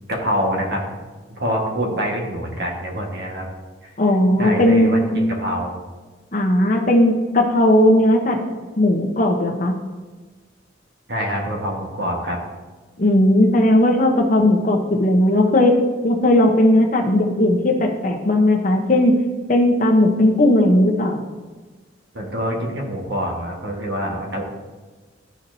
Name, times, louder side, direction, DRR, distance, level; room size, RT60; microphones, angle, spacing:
voice 1, 0.1-1.0 1.4-3.5 4.4-5.8 11.1-12.4 22.1-24.4, equal, 60° right, 0 dB, 1.4 m, -25 dB
voice 2, 4.0-5.2 6.3-8.4 8.8-9.7 13.0-15.7 16.0-19.1 19.5-21.2, left 1 dB, 45° left, 1 dB, 0.9 m, -16 dB
12.5 x 4.2 x 2.7 m, 1.3 s
head